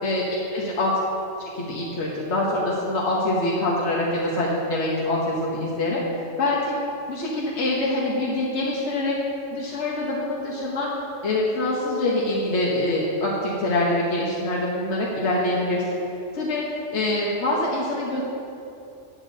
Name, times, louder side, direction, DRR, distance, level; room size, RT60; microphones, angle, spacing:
voice 1, 0.5-0.9 1.5-6.0 6.4-6.8 7.1-9.2 9.5-10.9 11.2-16.0 16.3-16.6 16.9-18.2, left 2 dB, 65° left, -4 dB, 1.4 m, -24 dB
11.5 x 11.0 x 2.7 m, 2.7 s
omnidirectional pair, 1.3 m